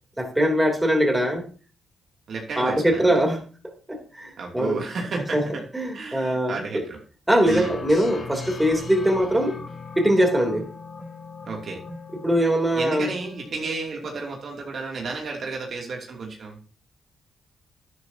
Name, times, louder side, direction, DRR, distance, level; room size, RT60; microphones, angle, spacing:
voice 1, 0.2-1.4 2.6-4.8 5.3-5.5 5.7-6.8 7.3-9.6 10.0-10.7 12.2-13.1, equal, 10° right, 2 dB, 3.5 m, -22 dB
voice 2, 2.3-3.1 4.4-5.6 5.9-7.0 7.4-7.8 11.5-11.8 12.8-16.6, right 4 dB, 60° right, 0 dB, 2.9 m, -32 dB
sound 1, 7.5-14.4, left 4 dB, 45° left, 4.9 m, -39 dB
11.0 x 11.0 x 2.9 m, 0.36 s
cardioid pair, 65°, 0 cm